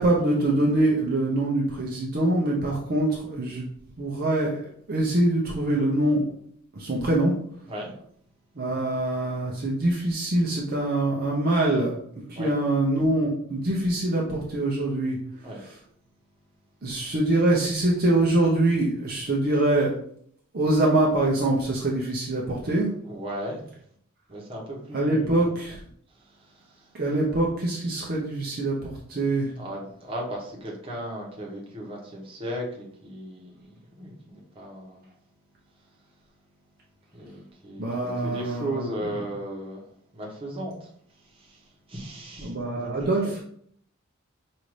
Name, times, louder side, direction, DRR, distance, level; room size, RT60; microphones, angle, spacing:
voice 1, 0.0-3.6 4.0-6.2 6.7-7.3 8.6-12.0 12.3-15.2 15.5-15.8 16.8-20.0 20.5-22.9 24.9-25.8 26.9-29.5 37.8-38.9 42.4-43.4, right 2 dB, 45° right, -3 dB, 0.7 m, -24 dB
voice 2, 23.0-23.6 24.3-25.5 26.2-26.9 29.6-35.0 37.1-39.8 40.1-40.9 41.3-43.3, right 1 dB, 25° right, -3 dB, 1.0 m, -36 dB
5.2 x 2.6 x 3.1 m, 0.64 s
head